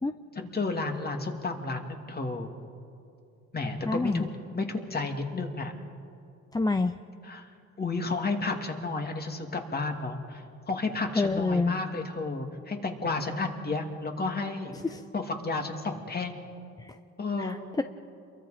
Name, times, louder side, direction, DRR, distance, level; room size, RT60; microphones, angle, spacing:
voice 1, 0.3-2.5 3.5-5.7 7.2-7.5 7.8-14.7 15.1-16.4 17.2-17.6, left 3 dB, 30° left, 3 dB, 2.6 m, -32 dB
voice 2, 3.8-4.3 6.5-6.9 11.1-11.7 14.8-15.0 16.8-17.0 17.4-17.8, left 3 dB, 15° left, 9 dB, 0.6 m, -27 dB
28.5 x 23.0 x 5.2 m, 2.6 s
cardioid pair, 90°, 30 cm